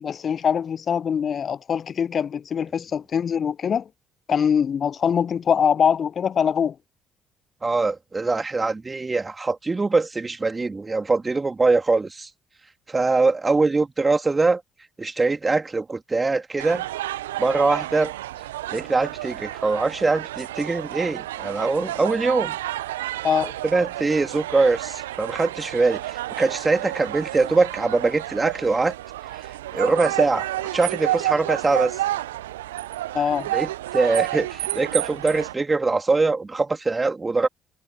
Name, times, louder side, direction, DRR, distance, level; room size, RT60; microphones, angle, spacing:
voice 1, 0.0-3.8 4.3-6.7 23.2-23.5 33.1-33.5, left 7 dB, 45° left, 0.4 m, -23 dB
voice 2, 7.6-12.3 12.9-14.6 15.0-16.9 17.4-18.1 18.7-22.6 23.6-28.9 29.3-30.5 30.7-32.0 33.5-37.5, right 3 dB, 25° right, 3.6 m, -22 dB
sound 1, 16.6-35.5, right 15 dB, 75° right, 0.9 m, -30 dB
figure-of-eight pair, 45°, 0 cm